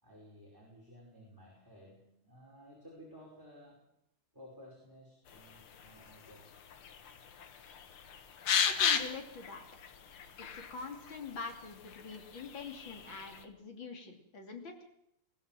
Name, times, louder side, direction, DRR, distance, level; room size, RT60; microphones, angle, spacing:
voice 1, 0.0-3.9 4.3-6.6, equal, 10° right, -3 dB, 5.2 m, -55 dB
sound 1, 5.3-13.4, left 7 dB, 85° left, 2.3 m, -37 dB
voice 2, 8.8-9.6 10.5-14.7, left 4 dB, 65° left, 4 dB, 3.5 m, -44 dB
21.0 x 16.5 x 7.6 m, 0.79 s
omnidirectional pair, 2.3 m